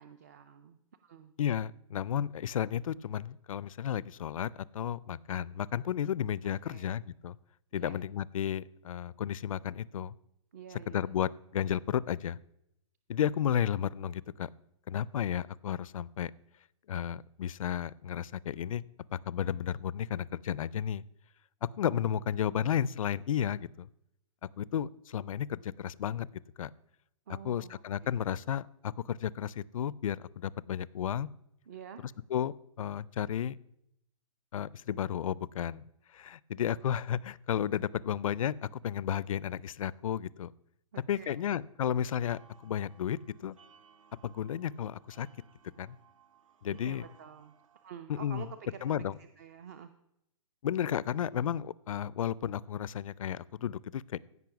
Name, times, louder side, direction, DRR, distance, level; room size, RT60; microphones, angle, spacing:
voice 1, 0.0-1.3 6.6-6.9 7.7-7.9 10.5-11.1 27.3-27.8 31.7-32.0 40.9-41.5 46.8-47.6 47.8-49.9, right 8 dB, 30° right, 10 dB, 0.4 m, -48 dB
voice 2, 1.4-7.4 7.7-10.1 10.9-12.4 13.1-14.5 14.9-16.3 16.9-18.8 19.1-21.0 21.6-23.9 24.6-26.3 26.6-26.7 27.4-31.3 32.3-33.6 34.5-35.8 36.1-40.5 41.1-43.5 44.2-45.3 45.8-46.0 46.6-47.0 48.1-48.5 48.8-49.1 50.6-54.2, left 9 dB, 80° left, 22 dB, 0.5 m, -33 dB
sound 1, 42.2-47.9, right 7 dB, 80° right, 1.2 m, -62 dB
15.5 x 5.5 x 5.9 m, 0.80 s
hypercardioid pair, 175°, 17 cm